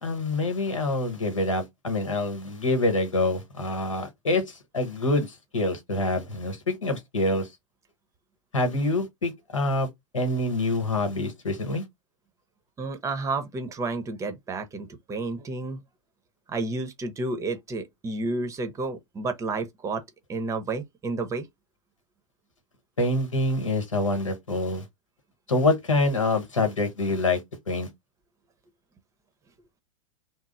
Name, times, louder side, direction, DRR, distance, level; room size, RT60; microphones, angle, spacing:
voice 1, 0.0-7.5 8.5-9.9 10.1-11.8 23.0-24.8 25.5-27.4 27.7-27.9, left 2 dB, 80° left, 1.1 m, -26 dB
voice 2, 12.8-15.8 16.5-20.0 20.3-21.5, right 3 dB, 20° right, 0.7 m, -31 dB
3.0 x 2.0 x 3.8 m
figure-of-eight pair, 100°, 16 cm